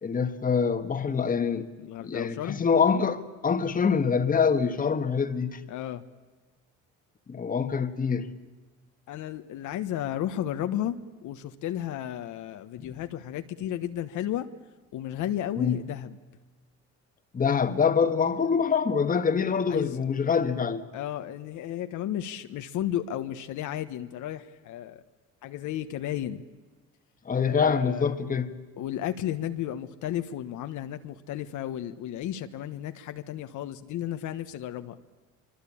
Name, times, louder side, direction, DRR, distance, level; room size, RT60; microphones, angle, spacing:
voice 1, 0.0-1.7 2.0-5.6 7.3-8.3 12.8-12.9 15.6-15.8 17.3-20.8 27.2-28.6, left 6 dB, 25° left, 1.5 m, -25 dB
voice 2, 1.8-2.6 5.7-6.0 9.1-14.5 14.9-16.2 19.7-20.0 20.9-25.0 25.4-26.4 27.4-28.1 28.8-34.9, left 11 dB, 75° left, 1.3 m, -33 dB
24.5 x 24.0 x 8.7 m
cardioid pair, 115°, 31 cm